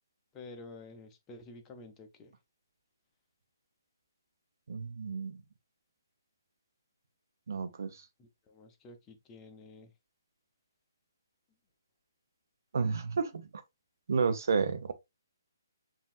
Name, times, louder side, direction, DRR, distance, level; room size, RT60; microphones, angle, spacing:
voice 1, 0.3-2.3 8.2-9.9, left 2 dB, 15° left, 0.8 m, -50 dB
voice 2, 4.7-5.4 7.5-7.9 12.7-13.4 14.1-14.9, right 5 dB, 55° right, 0.8 m, -31 dB
7.1 x 2.9 x 2.5 m
figure-of-eight pair, 135°, 2 cm